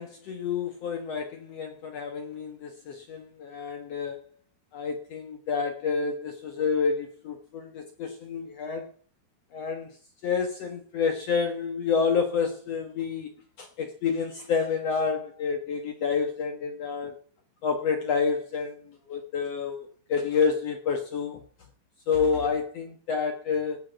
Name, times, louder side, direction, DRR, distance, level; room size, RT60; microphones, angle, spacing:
voice 1, 0.0-4.2 4.7-8.9 9.5-10.0 10.2-13.3 13.6-17.2 17.6-21.4 22.1-23.8, left 5 dB, 75° left, 1.4 m, -29 dB
18.0 x 9.2 x 5.7 m
omnidirectional pair, 5.1 m